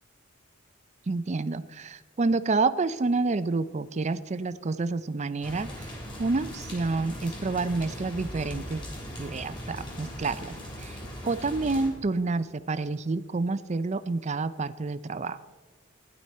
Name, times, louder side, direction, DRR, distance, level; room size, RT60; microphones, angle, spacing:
voice 1, 1.1-5.9 6.2-8.8 9.2-10.5 10.8-11.0 11.2-15.4, right 3 dB, 35° right, 13 dB, 0.5 m, -28 dB
sound 1, 5.4-11.9, equal, 25° left, 3.3 m, -39 dB
15.5 x 10.5 x 4.3 m, 1.3 s
head